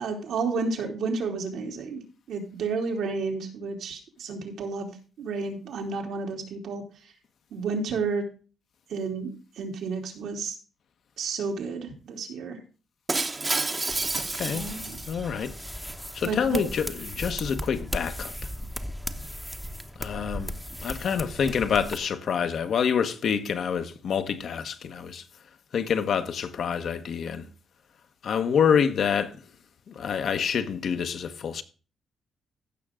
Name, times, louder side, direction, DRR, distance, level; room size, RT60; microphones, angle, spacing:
voice 1, 0.0-2.0 2.3-6.8 7.5-8.3 8.9-10.5 11.2-12.6 14.5-15.0 16.2-16.6, right 4 dB, 80° right, 3.0 m, -31 dB
Shatter, 13.1-15.5, right 3 dB, 25° right, 1.0 m, -29 dB
sound 1, 13.9-22.0, equal, ahead, 0.9 m, -37 dB
voice 2, 14.1-14.6 15.1-15.5 16.1-18.3 20.0-20.5 20.8-25.2 25.7-27.5 28.2-29.4 29.9-31.6, left 7 dB, 60° left, 1.1 m, -27 dB
15.5 x 6.2 x 3.7 m
cardioid pair, 115°, 0 cm